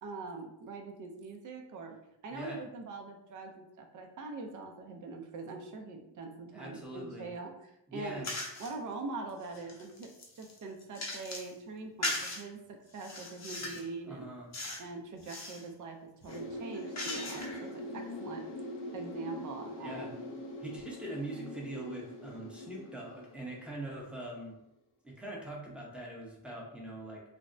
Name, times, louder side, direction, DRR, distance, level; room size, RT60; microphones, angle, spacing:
voice 1, 0.0-2.0 2.2-8.2 8.6-10.1 10.4-14.3 14.8-18.5 18.9-20.1, right 3 dB, 45° right, 2 dB, 0.5 m, -43 dB
voice 2, 2.3-2.6 6.5-7.3 7.9-8.3 14.1-14.5 19.8-20.2 20.6-24.6 25.0-27.2, right 1 dB, 5° right, -3 dB, 0.7 m, -42 dB
sound 1, 8.2-8.7 9.3-11.5 12.0-12.4 12.9-13.9 14.5-14.9 15.2-15.6 16.2-17.7, left 2 dB, 40° left, 0.6 m, -39 dB
sound 2, 16.3-24.3 24.6-24.7, left 1 dB, 85° left, 0.6 m, -43 dB
3.3 x 2.0 x 2.5 m, 0.81 s
wide cardioid pair, 100°, 42 cm